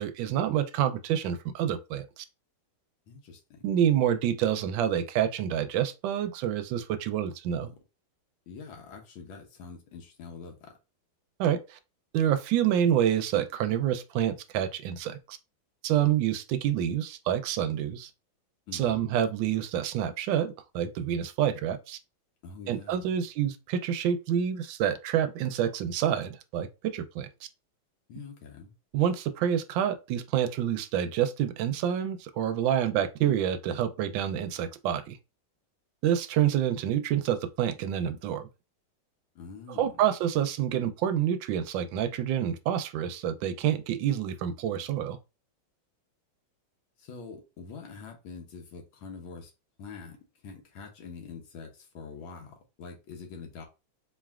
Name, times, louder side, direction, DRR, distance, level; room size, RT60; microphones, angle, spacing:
voice 1, 0.0-2.2 3.6-7.7 11.4-11.8 12.1-15.4 15.8-18.1 18.7-22.0 22.7-27.3 28.9-35.2 36.0-38.5 39.8-45.2, right 10 dB, 75° right, 1.2 m, -27 dB
voice 2, 3.1-3.7 7.5-7.8 8.5-10.8 18.7-19.1 22.4-23.2 28.1-28.7 39.3-40.1 47.0-49.5 49.8-53.6, left 5 dB, 75° left, 1.6 m, -45 dB
4.4 x 3.2 x 2.4 m
omnidirectional pair, 2.3 m